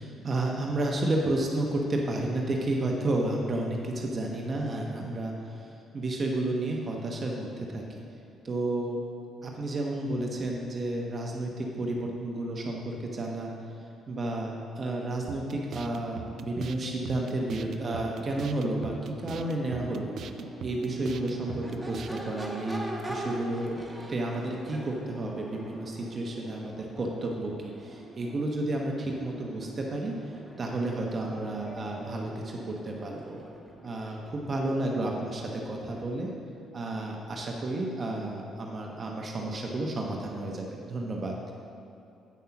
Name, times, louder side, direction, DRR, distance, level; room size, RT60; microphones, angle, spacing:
voice 1, 0.0-8.0 8.4-9.0 9.4-13.5 14.1-20.1 20.6-23.8 24.1-33.4 33.8-36.3 36.7-41.3, right 2 dB, 40° right, 0 dB, 0.9 m, -31 dB
sound 1, 15.3-22.3, right 6 dB, 60° right, 0.4 m, -42 dB
Crowd / Race car auto racing / Accelerating revving vroom, 19.2-36.3, right 1 dB, 10° right, 1.2 m, -44 dB
8.2 x 5.5 x 5.8 m, 2.7 s
cardioid pair, 95°, 0 cm